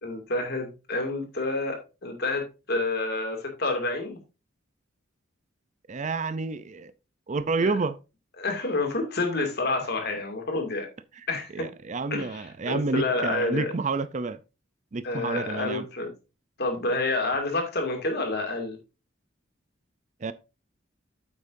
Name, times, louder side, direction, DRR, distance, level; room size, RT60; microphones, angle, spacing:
voice 1, 0.0-4.2 7.5-7.8 8.4-10.9 11.3-11.7 12.1-13.7 15.0-16.1 16.6-18.8, left 2 dB, 55° left, 2.4 m, -29 dB
voice 2, 5.9-6.9 7.3-8.0 11.5-14.4 14.9-15.9 20.2-20.3, right 3 dB, 40° right, 0.5 m, -29 dB
8.8 x 8.2 x 2.6 m
head